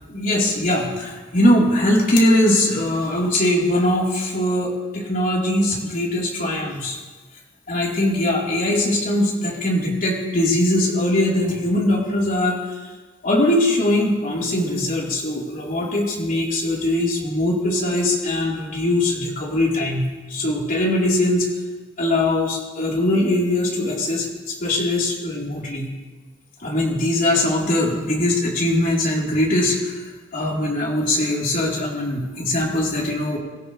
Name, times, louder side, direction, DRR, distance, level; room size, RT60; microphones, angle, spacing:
voice 1, 0.1-7.0 7.7-12.6 13.2-21.5 22.0-25.9 26.6-30.0 30.3-33.4, left 1 dB, 45° left, -4 dB, 4.4 m, -21 dB
26.5 x 15.0 x 3.5 m, 1.3 s
head